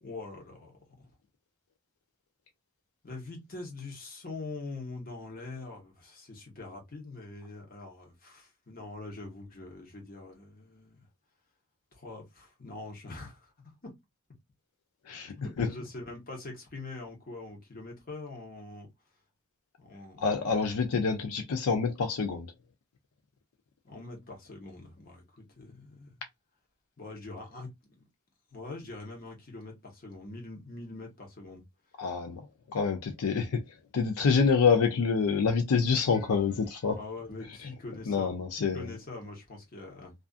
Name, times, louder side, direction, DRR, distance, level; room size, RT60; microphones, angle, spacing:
voice 1, 0.0-0.7 1.0-1.1 3.0-11.1 11.9-13.5 13.8-13.9 15.3-18.9 19.8-20.4 23.8-26.2 27.0-28.0 28.5-31.6 36.9-38.3 38.6-40.1, left 2 dB, 40° left, 1.0 m, -43 dB
voice 2, 15.1-15.7 20.2-22.5 32.0-32.4 32.7-33.6 33.9-37.0 38.1-38.9, left 5 dB, 80° left, 0.5 m, -27 dB
2.4 x 2.4 x 2.3 m
head